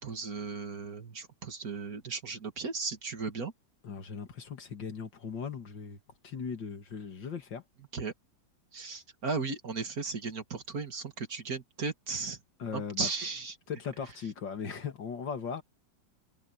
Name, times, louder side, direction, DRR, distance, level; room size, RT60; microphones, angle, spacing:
voice 1, 0.0-3.5 7.9-8.1 8.7-12.4 12.7-13.5, right 4 dB, 50° right, 2.4 m, -36 dB
voice 2, 3.8-6.0 6.2-7.6 12.6-13.1 13.7-15.6, left 6 dB, 80° left, 2.8 m, -38 dB
omnidirectional pair, 2.0 m